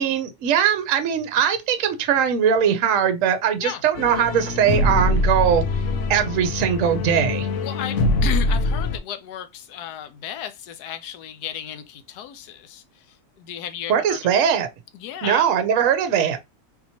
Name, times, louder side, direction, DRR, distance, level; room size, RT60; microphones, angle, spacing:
voice 1, 0.0-5.6 6.1-7.5 13.9-14.7 15.2-16.4, right 8 dB, 65° right, 1.0 m, -20 dB
sound 1, 4.0-9.0, left 2 dB, 65° left, 0.8 m, -23 dB
voice 2, 7.6-12.8 13.4-14.2 14.9-15.5, left 10 dB, 90° left, 1.2 m, -34 dB
4.2 x 2.9 x 2.7 m
omnidirectional pair, 1.6 m